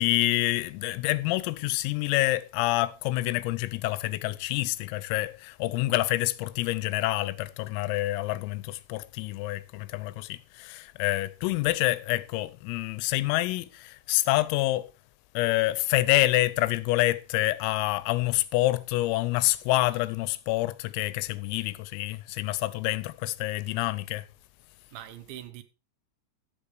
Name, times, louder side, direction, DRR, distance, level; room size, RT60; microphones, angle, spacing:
voice 1, 0.0-14.9 15.3-24.3, left 18 dB, 85° left, 3.4 m, -27 dB
voice 2, 24.9-25.6, right 12 dB, 75° right, 3.1 m, -43 dB
13.0 x 8.5 x 4.8 m
omnidirectional pair, 5.9 m